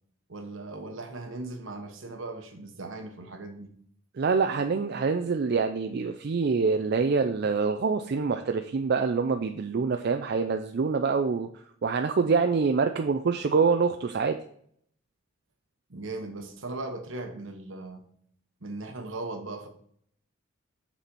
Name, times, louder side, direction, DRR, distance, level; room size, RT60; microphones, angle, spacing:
voice 1, 0.3-3.7 15.9-18.0 18.6-19.7, right 2 dB, 70° right, 1.1 m, -38 dB
voice 2, 4.2-11.5 11.8-14.4, right 5 dB, 50° right, 0.4 m, -25 dB
7.3 x 4.2 x 5.2 m
head